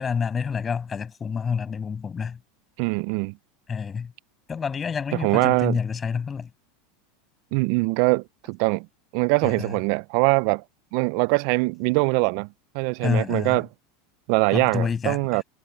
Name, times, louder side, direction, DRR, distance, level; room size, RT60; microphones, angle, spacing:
voice 1, 0.0-2.4 3.7-4.1 4.5-6.5 9.4-9.7 13.0-13.6 14.5-15.4, left 6 dB, 20° left, 5.9 m, -28 dB
voice 2, 2.8-3.3 5.2-5.8 7.5-8.9 9.1-10.6 10.9-12.5 12.7-13.7 14.3-15.4, right 28 dB, 60° right, 0.4 m, -22 dB
supercardioid pair, 125°, 0 cm